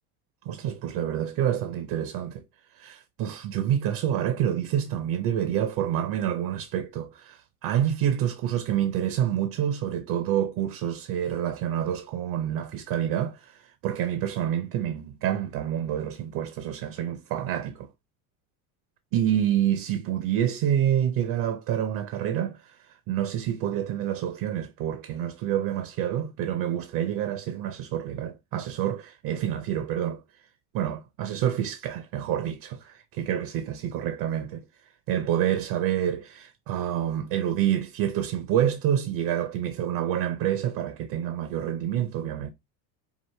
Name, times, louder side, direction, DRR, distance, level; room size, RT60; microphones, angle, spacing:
voice 1, 0.5-2.4 2.7-17.9 19.1-30.2 30.7-34.6 35.1-42.5, right 10 dB, 50° right, 0.6 m, -28 dB
4.9 x 2.5 x 3.1 m
cardioid pair, 130°, 44 cm